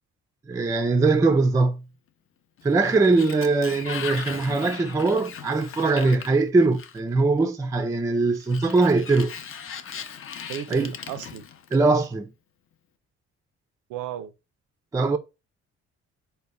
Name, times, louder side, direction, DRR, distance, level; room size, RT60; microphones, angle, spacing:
voice 1, 0.5-1.8 2.6-9.3 10.7-10.9 11.7-12.3 14.9-15.2, right 3 dB, 10° right, 0.3 m, -21 dB
Sliding door, 2.6-7.2 8.4-12.1, left 7 dB, 45° left, 0.5 m, -38 dB
voice 2, 10.5-11.4 13.9-14.3, right 11 dB, 85° right, 0.5 m, -34 dB
4.0 x 2.1 x 3.3 m
cardioid pair, 90°, 30 cm